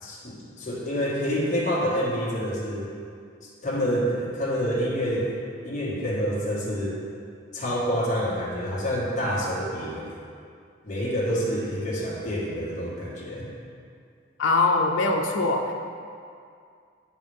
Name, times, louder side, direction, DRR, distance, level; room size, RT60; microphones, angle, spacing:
voice 1, 0.0-2.9 3.6-5.3 5.6-7.0 7.5-10.2 10.8-13.5, equal, 40° left, -7 dB, 1.6 m, -27 dB
voice 2, 14.4-15.7, left 3 dB, 90° left, 2 dB, 0.6 m, -22 dB
10.5 x 4.0 x 3.4 m, 2.3 s
head